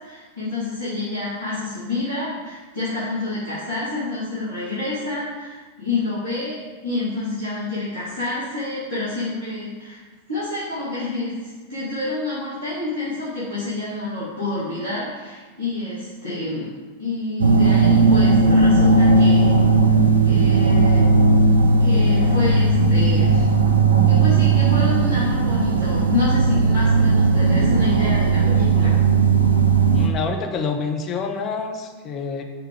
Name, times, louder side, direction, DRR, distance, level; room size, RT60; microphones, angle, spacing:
voice 1, 0.0-10.0 10.3-16.7 17.0-19.6 20.2-21.2 21.8-23.5 24.0-28.9, left 2 dB, 85° left, -14 dB, 1.4 m, -28 dB
sound 1, 17.4-30.1, right 3 dB, 75° right, 0.3 m, -16 dB
voice 2, 29.9-32.4, left 5 dB, 30° left, 5 dB, 0.5 m, -27 dB
4.8 x 2.3 x 4.7 m, 1.3 s
figure-of-eight pair, 90°, 0 cm